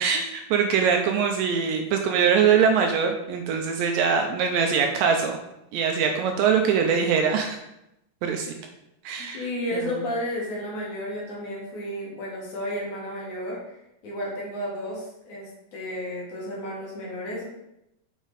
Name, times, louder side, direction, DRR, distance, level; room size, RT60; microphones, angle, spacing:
voice 1, 0.0-5.4 5.7-7.6 8.2-8.5 9.0-9.5 9.7-9.8, right 6 dB, 80° right, 3 dB, 2.1 m, -22 dB
voice 2, 9.2-13.8 14.0-17.5, left 1 dB, 55° left, -4 dB, 3.1 m, -32 dB
8.1 x 5.1 x 4.0 m, 0.85 s
omnidirectional pair, 4.3 m